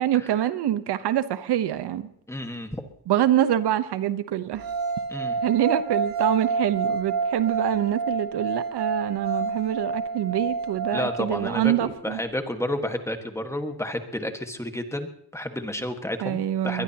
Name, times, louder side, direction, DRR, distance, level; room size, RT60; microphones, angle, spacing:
voice 1, 0.0-2.1 3.1-4.6 5.4-12.2 16.2-16.8, right 11 dB, 80° right, 1.0 m, -25 dB
voice 2, 2.3-2.8 5.1-5.3 10.9-16.8, left 1 dB, 5° left, 1.6 m, -31 dB
sound 1, 4.6-11.7, right 4 dB, 60° right, 2.5 m, -28 dB
22.5 x 21.0 x 2.9 m
cardioid pair, 125°, 39 cm